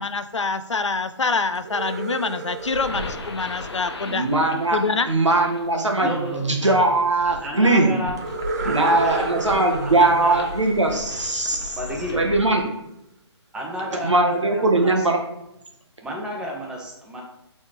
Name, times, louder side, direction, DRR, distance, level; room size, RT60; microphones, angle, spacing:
voice 1, 0.0-4.3 4.7-5.1, left 4 dB, 85° left, 12 dB, 0.5 m, -25 dB
sound 1, 1.5-4.5 8.2-11.9, right 4 dB, 35° right, 0.7 m, -33 dB
sound 2, 2.6-12.7, left 2 dB, 60° left, 1.1 m, -38 dB
voice 2, 4.1-4.8 5.0-7.9 8.6-11.8 12.2-12.6 14.0-15.2, right 2 dB, 90° right, 1 dB, 1.6 m, -20 dB
voice 3, 6.0-6.5 7.2-8.2 8.6-10.4 11.8-12.2 13.5-15.1 16.0-17.2, right 1 dB, 5° right, -2 dB, 0.9 m, -31 dB
7.2 x 4.2 x 3.2 m, 0.83 s
figure-of-eight pair, 140°, 15 cm